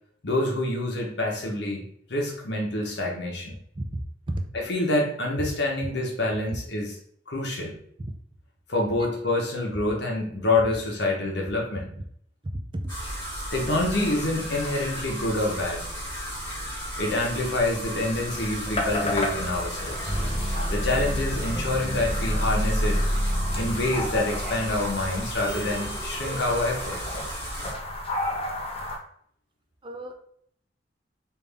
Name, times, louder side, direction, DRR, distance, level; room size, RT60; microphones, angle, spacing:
voice 1, 0.2-3.6 4.5-7.0 7.3-7.7 8.7-11.9 13.5-15.8 17.0-20.2 20.7-23.0 23.5-27.0, left 2 dB, 70° left, -1 dB, 1.0 m, -27 dB
voice 2, 12.4-12.9 29.8-30.2, right 1 dB, 30° right, 4 dB, 0.4 m, -32 dB
sound 1, 12.9-27.7, equal, 15° left, 1.3 m, -34 dB
sound 2, 18.2-29.0, left 1 dB, 35° left, 0.7 m, -35 dB
sound 3, 20.0-26.6, equal, 60° right, 1.1 m, -29 dB
3.5 x 2.6 x 3.3 m, 0.65 s
head